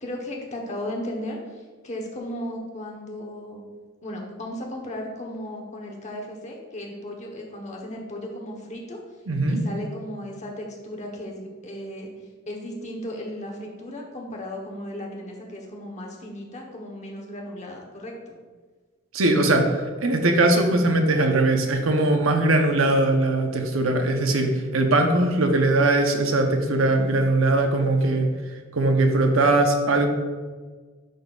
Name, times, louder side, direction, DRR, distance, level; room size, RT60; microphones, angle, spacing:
voice 1, 0.0-3.6 4.0-9.0 9.5-18.4, left 1 dB, 35° left, 0 dB, 1.0 m, -35 dB
voice 2, 9.3-9.6 19.1-28.3 28.7-30.1, right 2 dB, 90° right, 4 dB, 0.8 m, -20 dB
10.5 x 4.1 x 2.4 m, 1.4 s
head